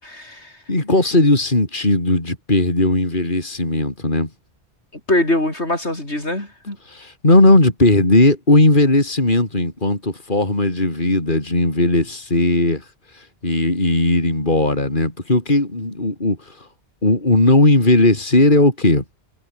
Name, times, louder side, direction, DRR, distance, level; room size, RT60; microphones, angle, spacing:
voice 1, 0.0-0.5 5.1-6.8, left 1 dB, 90° left, 7.7 m, -22 dB
voice 2, 0.7-4.3 6.9-12.8 13.1-16.7 17.0-19.0, left 2 dB, 50° left, 4.6 m, -17 dB
omnidirectional pair, 1.1 m